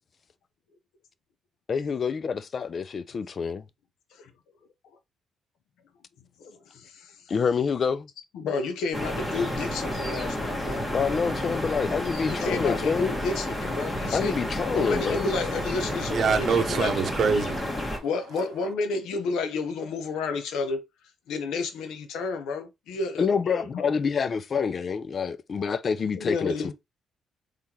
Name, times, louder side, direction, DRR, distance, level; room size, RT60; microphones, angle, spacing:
voice 1, 1.7-3.6 7.3-8.1 10.9-13.2 14.1-15.3 23.2-26.7, left 6 dB, 45° left, 0.4 m, -27 dB
voice 2, 6.4-7.3 8.3-10.9 12.2-14.4 14.7-16.9 18.0-20.8 21.3-23.9 26.2-26.7, left 3 dB, 85° left, 0.8 m, -31 dB
sound 1, 8.9-18.0, left 1 dB, 20° left, 1.4 m, -31 dB
voice 3, 16.0-18.0, right 5 dB, 55° right, 0.8 m, -25 dB
3.8 x 3.3 x 2.8 m
cardioid pair, 90°, 0 cm